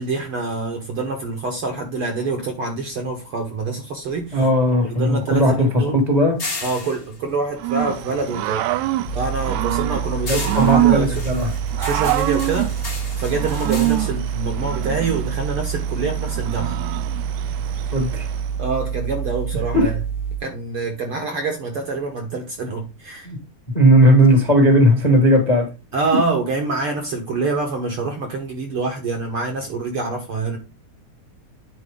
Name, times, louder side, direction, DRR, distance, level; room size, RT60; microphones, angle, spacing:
voice 1, 0.0-4.5 4.8-6.0 6.6-8.6 9.1-11.2 11.8-12.7 13.2-16.8 18.6-20.0 20.4-23.3 25.9-30.6, right 3 dB, 60° right, 1.6 m, -26 dB
sound 1, 4.0-8.5 8.9-15.3, left 3 dB, 50° left, 0.6 m, -36 dB
voice 2, 4.3-6.4 10.3-11.5 17.9-18.3 19.7-19.9 23.2-23.4 23.7-25.7, equal, 20° left, 1.0 m, -16 dB
Growling / Cricket, 7.6-18.5, right 15 dB, 80° right, 1.7 m, -25 dB
sound 2, 9.0-20.4, right 7 dB, 65° left, 1.1 m, -27 dB
9.9 x 4.4 x 3.6 m
omnidirectional pair, 3.6 m